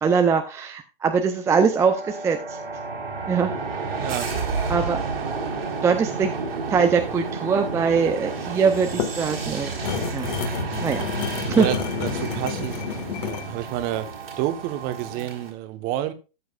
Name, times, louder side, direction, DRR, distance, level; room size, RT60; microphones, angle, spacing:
voice 1, 0.0-2.6 3.3-3.6 4.0-4.1 4.7-5.0 5.8-6.3 6.7-9.7 10.1-10.3 10.8-11.0 11.4-11.7, right 6 dB, 10° right, 0.6 m, -22 dB
sound 1, 1.7-15.5, right 4 dB, 90° right, 4.2 m, -31 dB
voice 2, 4.0-4.3 11.5-12.9 13.2-14.1 14.4-16.1, right 12 dB, 30° right, 1.1 m, -29 dB
sound 2, 8.8-13.5, left 9 dB, 45° left, 1.8 m, -30 dB
14.0 x 7.7 x 2.4 m
hypercardioid pair, 130°, 29 cm